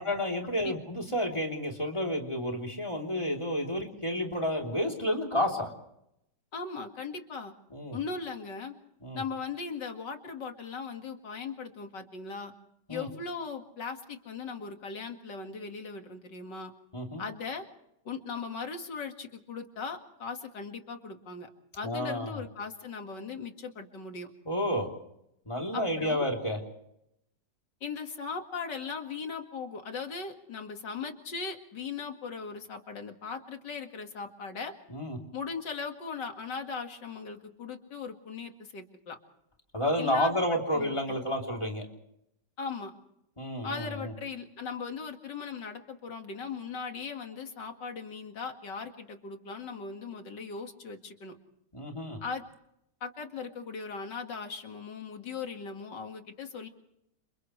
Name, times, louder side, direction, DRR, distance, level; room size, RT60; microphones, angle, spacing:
voice 1, 0.0-5.7 7.7-8.0 9.0-9.2 12.9-13.1 16.9-17.2 21.8-22.4 24.5-24.9 25.5-26.6 34.9-35.2 39.7-41.9 43.4-44.1 51.7-52.2, left 1 dB, 15° left, 0 dB, 3.6 m, -30 dB
voice 2, 6.5-7.5 7.9-8.7 9.1-12.5 12.9-16.7 17.2-17.6 18.0-21.5 21.8-24.3 25.7-26.2 27.8-34.7 35.3-39.2 40.0-41.2 42.6-42.9 43.6-51.3 52.2-52.4 53.0-56.7, left 5 dB, 85° left, 4 dB, 2.7 m, -38 dB
29.5 x 27.5 x 3.3 m, 0.79 s
omnidirectional pair, 1.9 m